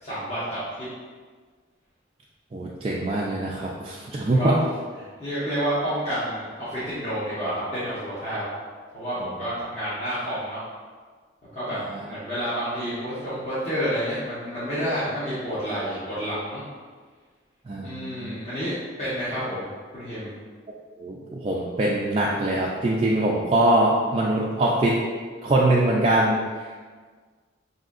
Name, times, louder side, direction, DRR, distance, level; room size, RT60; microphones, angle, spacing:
voice 1, 0.0-0.9 4.3-4.5 5.2-8.4 8.9-10.6 11.5-11.8 12.1-16.6 17.8-19.7 19.9-20.3, equal, 35° left, -12 dB, 1.1 m, -29 dB
voice 2, 2.5-4.6 11.7-12.0 17.7-18.4 21.0-25.0 25.4-26.4, right 1 dB, 30° right, -4 dB, 0.3 m, -23 dB
5.9 x 2.7 x 2.4 m, 1.5 s
head